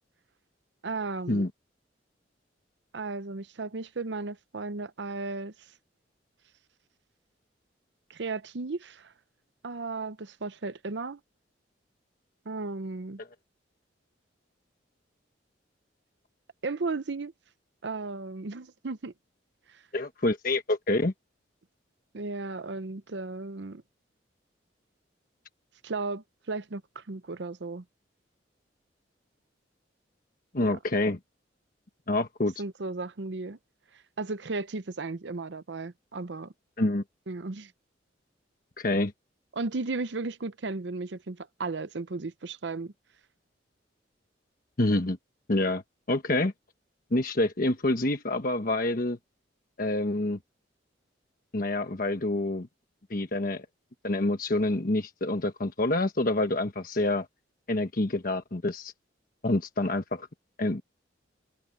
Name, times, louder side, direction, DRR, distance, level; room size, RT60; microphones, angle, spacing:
voice 1, 0.8-1.5 2.9-5.5 8.1-9.1 9.6-11.2 12.5-13.2 16.6-17.3 17.8-19.1 19.7-19.8 22.1-23.8 25.8-27.8 30.6-30.8 32.6-33.6 34.2-36.5 37.3-37.7 39.5-42.9, right 3 dB, 65° right, 0.7 m, -35 dB
voice 2, 19.9-21.1 30.5-31.2 32.1-32.5 36.8-37.0 38.8-39.1 44.8-45.2 45.5-45.8 46.1-46.5 47.1-49.2 49.8-50.4 51.5-52.7 53.1-53.7 54.0-57.3 57.7-58.9 59.4-60.3 60.6-60.8, left 2 dB, 50° left, 1.2 m, -27 dB
head